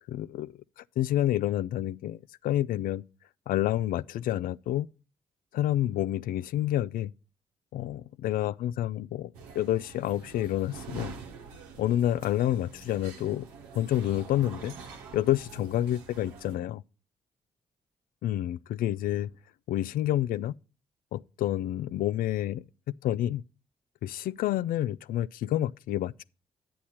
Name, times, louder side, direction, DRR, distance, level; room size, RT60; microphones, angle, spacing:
voice 1, 0.1-0.5 1.0-3.0 3.5-4.9 5.5-7.1 7.7-11.1 11.8-13.5 13.7-14.7 15.1-16.8 18.2-19.3 19.7-20.5 21.1-22.6 23.0-23.4 24.0-26.2, left 13 dB, 70° left, 0.4 m, -29 dB
sound 1, 9.3-16.6, right 5 dB, 90° right, 1.1 m, -46 dB
10.5 x 8.4 x 4.3 m
hypercardioid pair, 45°, 15 cm